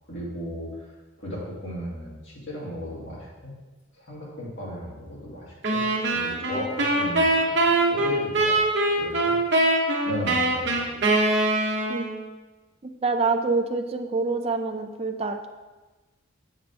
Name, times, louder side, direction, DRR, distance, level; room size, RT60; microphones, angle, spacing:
voice 1, 0.1-0.9 1.2-3.6 3.9-8.7 9.0-9.3 10.0-11.0, equal, 60° left, -7 dB, 2.5 m, -36 dB
sound 1, 5.6-12.2, right 2 dB, 55° right, 1.1 m, -23 dB
voice 2, 12.8-15.5, right 3 dB, 30° right, 5 dB, 0.4 m, -26 dB
7.4 x 6.3 x 3.5 m, 1.2 s
head